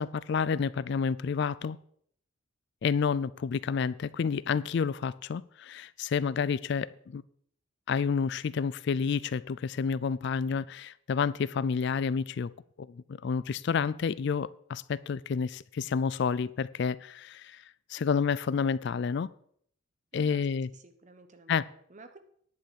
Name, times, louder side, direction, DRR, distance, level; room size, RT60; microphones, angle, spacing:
voice 1, 0.0-1.8 2.8-7.2 7.9-12.5 12.8-17.6 17.9-19.3 20.1-20.7 21.5-21.7, left 6 dB, 55° left, 19 dB, 0.3 m, -29 dB
voice 2, 20.1-20.5 20.7-22.2, right 2 dB, 35° right, 8 dB, 1.1 m, -53 dB
10.5 x 5.6 x 8.3 m, 0.65 s
head